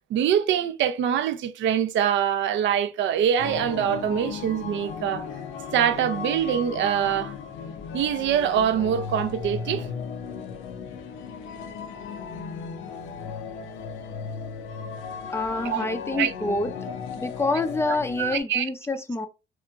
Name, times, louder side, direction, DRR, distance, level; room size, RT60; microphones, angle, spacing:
voice 1, 0.1-5.3 5.7-7.3 7.9-9.9 15.6-16.3 18.2-18.6, right 9 dB, 70° right, 0.4 m, -24 dB
sound 1, 3.4-18.4, left 6 dB, 90° left, 0.5 m, -36 dB
voice 2, 15.3-16.7 17.2-19.3, left 2 dB, 15° left, 0.4 m, -27 dB
2.8 x 2.4 x 2.3 m
cardioid pair, 90°, 20 cm